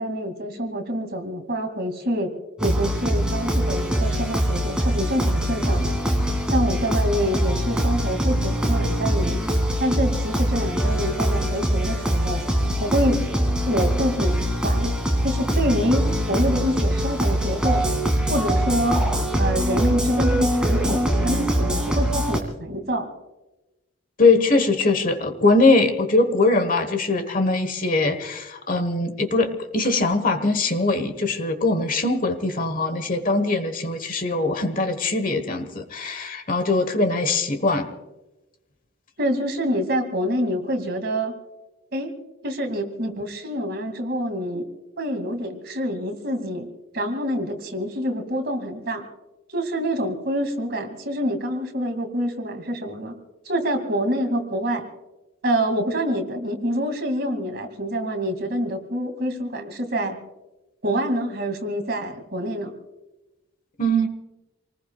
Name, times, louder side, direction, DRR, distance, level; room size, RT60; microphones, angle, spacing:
voice 1, 0.0-2.3 2.6-5.9 6.5-9.4 9.8-12.4 12.8-13.2 13.7-14.4 14.6-15.0 15.2-17.9 18.3-19.1 19.4-23.1 39.2-41.3 41.9-42.1 42.4-44.7 45.0-46.7 46.9-49.0 49.5-53.1 53.4-54.8 55.4-60.2 60.8-62.7, equal, 50° right, 4 dB, 2.5 m, -26 dB
sound 1, 2.6-22.4, equal, 5° right, 2.4 m, -23 dB
voice 2, 24.2-37.9 63.8-64.1, left 2 dB, 40° left, 9 dB, 1.4 m, -21 dB
28.0 x 19.5 x 2.4 m, 1.0 s
head